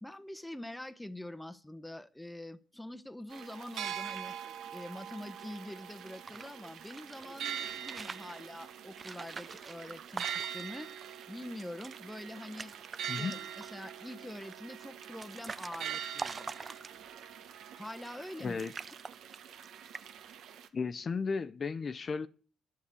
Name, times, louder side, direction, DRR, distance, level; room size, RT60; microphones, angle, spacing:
voice 1, 0.0-4.3 4.7-10.9 11.3-12.7 13.0-16.5 17.8-18.6, left 1 dB, 5° left, 0.8 m, -45 dB
sound 1, 3.3-20.7, right 9 dB, 80° right, 1.1 m, -43 dB
sound 2, 6.0-7.3 7.7-8.4 8.9-10.8 11.1-11.2 11.5-12.0 12.3-13.0 13.3-13.8 14.5-17.2 17.9-18.3 18.6-19.7 19.9-20.3, right 4 dB, 35° right, 0.5 m, -44 dB
voice 2, 20.7-22.3, left 5 dB, 40° left, 0.6 m, -34 dB
10.5 x 7.4 x 8.2 m
cardioid pair, 90°, 0 cm